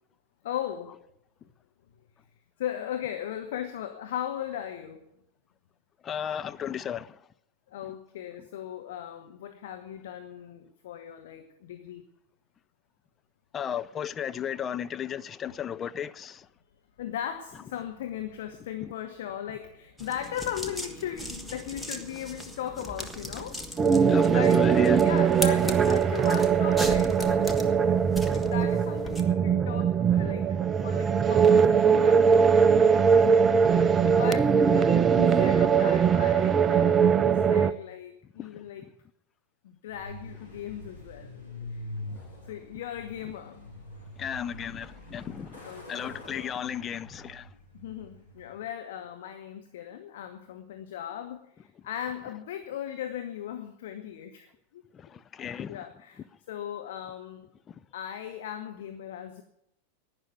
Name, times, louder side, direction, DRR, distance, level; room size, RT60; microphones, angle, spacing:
voice 1, 0.4-1.0 2.6-5.0 7.7-12.0 17.0-23.6 24.3-24.7 25.0-27.6 28.3-30.5 30.8-32.6 34.0-38.9 39.6-41.4 41.7-41.8 42.4-43.6 45.6-46.1 47.7-54.8 55.7-57.5 57.9-59.4, left 10 dB, 55° left, 1.1 m, -38 dB
voice 2, 6.0-7.2 13.5-16.5 18.8-18.9 24.1-25.1 33.6-33.8 34.1-34.2 38.4-38.9 42.1-42.2 44.2-47.5 54.9-55.8 57.7-57.8, left 9 dB, 25° left, 0.5 m, -35 dB
sound 1, 20.0-29.2, equal, ahead, 1.4 m, -38 dB
sound 2, 23.8-37.7, right 6 dB, 20° right, 0.6 m, -21 dB
Truck, 39.9-48.6, left 1 dB, 85° left, 5.7 m, -44 dB
11.5 x 9.7 x 9.3 m
figure-of-eight pair, 90°, 0 cm